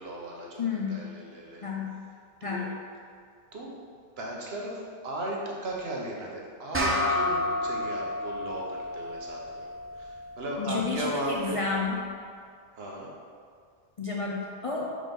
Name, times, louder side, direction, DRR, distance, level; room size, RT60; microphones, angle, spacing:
voice 1, 0.0-1.7 2.4-2.7 3.5-11.6 12.7-13.1, right 1 dB, 70° right, -3 dB, 1.2 m, -36 dB
voice 2, 0.6-1.0 1.6-2.0 2.4-2.7 10.6-11.9 14.0-14.9, left 4 dB, 45° left, -3 dB, 0.5 m, -31 dB
sound 1, 6.7-11.5, left 1 dB, 15° right, 0.7 m, -31 dB
4.9 x 3.9 x 5.2 m, 2.2 s
omnidirectional pair, 1.1 m